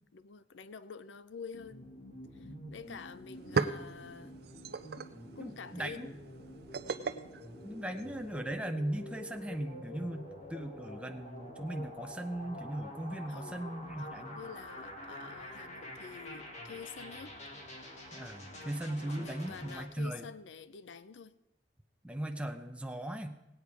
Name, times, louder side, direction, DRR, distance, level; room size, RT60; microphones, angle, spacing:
voice 1, 0.1-1.9 2.3-4.4 5.4-6.1 13.3-13.7 14.0-17.3 18.5-21.3, left 5 dB, 80° left, 0.5 m, -48 dB
sound 1, 1.5-19.8, left 1 dB, 40° left, 1.9 m, -48 dB
voice 2, 2.4-2.7 5.4-6.1 7.6-14.4 18.1-20.2 22.0-23.4, right 1 dB, 5° right, 0.6 m, -38 dB
sound 2, 2.8-2.9 3.2-8.4, right 4 dB, 60° right, 0.5 m, -38 dB
18.0 x 8.6 x 4.8 m
head